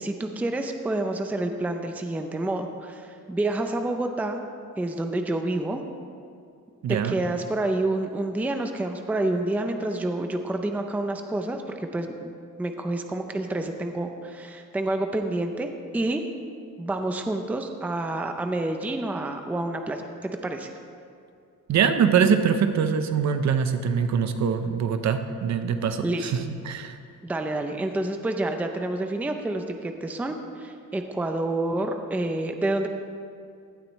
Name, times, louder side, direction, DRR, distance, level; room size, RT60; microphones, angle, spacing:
voice 1, 0.0-4.4 4.8-5.8 6.9-12.3 12.6-16.3 16.8-20.7 26.0-26.3 27.2-32.9, right 2 dB, 5° right, 5 dB, 0.5 m, -28 dB
voice 2, 6.8-7.2 21.7-27.0, right 7 dB, 60° right, 9 dB, 0.8 m, -23 dB
17.0 x 12.0 x 3.1 m, 2.4 s
cardioid pair, 180°, 32 cm